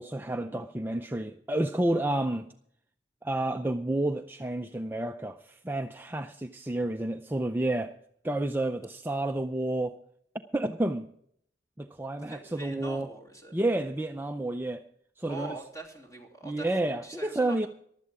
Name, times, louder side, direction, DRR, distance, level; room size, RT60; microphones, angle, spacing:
voice 1, 0.0-2.5 3.2-7.9 8.2-10.0 10.5-11.1 11.8-13.1 13.5-14.8 15.2-15.5 16.4-17.7, right 1 dB, 10° right, 0.5 m, -30 dB
voice 2, 12.2-13.5 15.3-17.6, right 2 dB, 20° left, 3.1 m, -43 dB
15.5 x 12.0 x 4.8 m
head